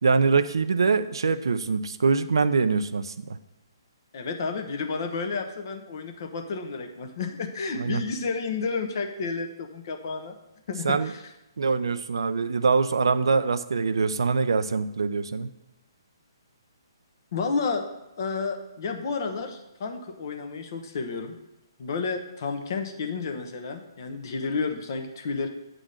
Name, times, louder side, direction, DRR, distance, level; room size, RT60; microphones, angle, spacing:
voice 1, 0.0-3.4 7.8-8.0 10.8-11.1 11.6-15.5, right 4 dB, 75° right, 12 dB, 0.5 m, -24 dB
voice 2, 4.1-10.4 10.7-11.2 17.3-17.9 18.2-21.3 21.8-25.5, left 4 dB, 50° left, 5 dB, 1.1 m, -31 dB
8.6 x 3.8 x 6.5 m, 0.93 s
hypercardioid pair, 140°, 2 cm